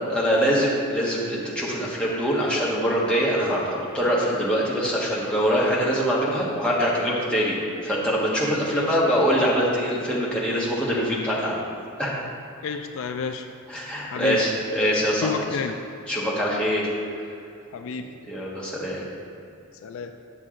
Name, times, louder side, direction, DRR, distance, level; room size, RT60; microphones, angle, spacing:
voice 1, 0.1-11.6 12.0-12.1 13.7-15.3 16.1-16.9 18.3-19.1, equal, 5° left, -6 dB, 1.4 m, -23 dB
voice 2, 8.7-9.2 12.6-13.5 14.0-14.4 15.2-15.8 17.7-18.1 19.8-20.1, left 5 dB, 65° left, 6 dB, 0.4 m, -30 dB
8.6 x 6.6 x 3.7 m, 2.7 s
head